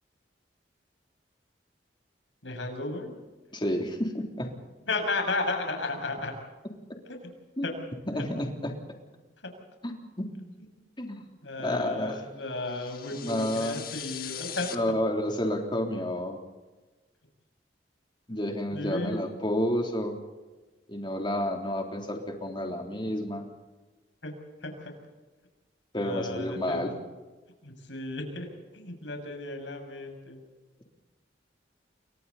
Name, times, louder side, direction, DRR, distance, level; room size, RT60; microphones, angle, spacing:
voice 1, 2.4-3.1 4.8-6.3 7.0-7.3 7.6-7.7 9.4-9.5 11.4-14.7 18.7-19.3 24.2-24.3 24.6-24.9 26.0-27.0 27.6-30.4, left 2 dB, 90° left, 3 dB, 6.5 m, -34 dB
voice 2, 3.5-4.5 7.6-7.7 8.1-8.8 9.8-10.3 11.0-11.2 11.6-12.2 13.2-13.8 14.7-16.4 18.3-20.2 20.9-23.5 25.9-26.9, left 1 dB, 25° left, 2 dB, 3.3 m, -30 dB
sound 1, 12.6-14.8, left 10 dB, 55° left, 1.7 m, -40 dB
29.0 x 24.0 x 4.2 m, 1.2 s
head